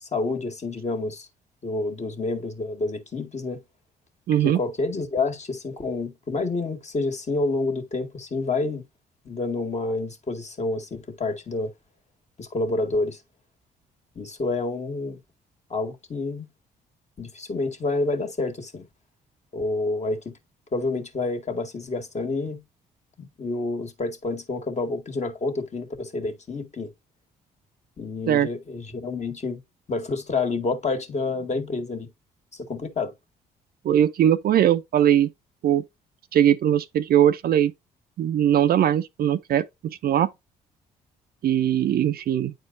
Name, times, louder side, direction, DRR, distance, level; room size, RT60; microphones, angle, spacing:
voice 1, 0.0-1.3 1.6-3.6 4.4-8.8 9.3-11.7 12.4-13.2 14.2-15.2 15.7-16.5 17.2-18.9 19.5-20.4 20.7-22.6 23.2-26.9 28.0-29.6 29.9-32.1 32.6-33.1, left 3 dB, 35° left, 1.8 m, -28 dB
voice 2, 4.3-4.6 28.3-28.5 33.8-35.3 35.6-35.8 36.3-37.7 38.2-40.3 41.4-42.5, right 10 dB, 50° right, 0.5 m, -20 dB
9.3 x 4.3 x 2.6 m
hypercardioid pair, 45°, 20 cm